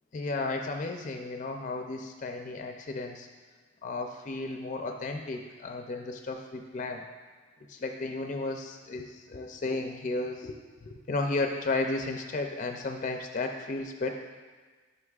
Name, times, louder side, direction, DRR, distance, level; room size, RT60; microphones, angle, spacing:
voice 1, 0.1-3.3 3.8-7.0 7.7-10.6 10.8-14.2, left 3 dB, 40° left, 4 dB, 0.4 m, -33 dB
9.6 x 5.4 x 2.4 m, 1.4 s
head